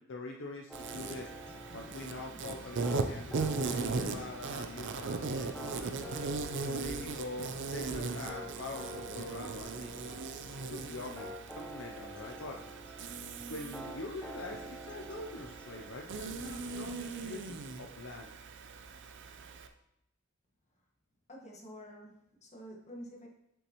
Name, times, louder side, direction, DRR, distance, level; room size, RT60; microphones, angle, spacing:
voice 1, 0.0-1.3 1.7-6.0 6.6-10.2 10.6-12.6 13.5-18.3, left 2 dB, 65° left, 1 dB, 0.7 m, -44 dB
sound 1, 0.7-16.0, equal, 5° left, 0.9 m, -48 dB
Insect, 0.7-19.7, right 4 dB, 60° right, 0.6 m, -39 dB
sound 2, 0.9-7.9, right 1 dB, 20° right, 1.5 m, -58 dB
voice 2, 21.3-23.3, equal, 35° left, -1 dB, 1.6 m, -48 dB
7.2 x 6.9 x 3.1 m, 0.80 s
head